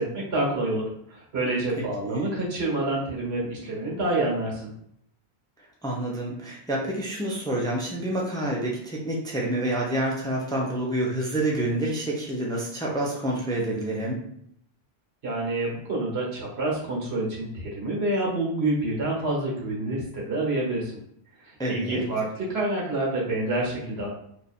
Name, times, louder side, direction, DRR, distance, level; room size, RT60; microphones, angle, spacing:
voice 1, 0.0-4.7 15.2-20.9 21.4-24.1, right 2 dB, 85° right, -4 dB, 1.5 m, -28 dB
voice 2, 5.8-14.2 21.6-22.1, right 1 dB, 5° left, -2 dB, 0.5 m, -28 dB
2.9 x 2.5 x 4.1 m, 0.71 s
omnidirectional pair, 1.0 m